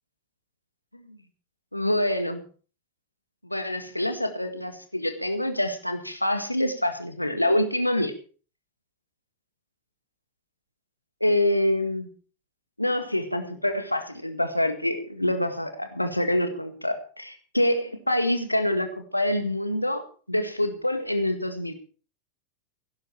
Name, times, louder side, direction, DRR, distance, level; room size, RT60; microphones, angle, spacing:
voice 1, 1.7-2.4 3.4-8.1 11.2-12.1 12.8-21.7, left 1 dB, 85° left, 8 dB, 1.9 m, -26 dB
16.5 x 11.0 x 4.6 m, 0.39 s
figure-of-eight pair, 90°, 0 cm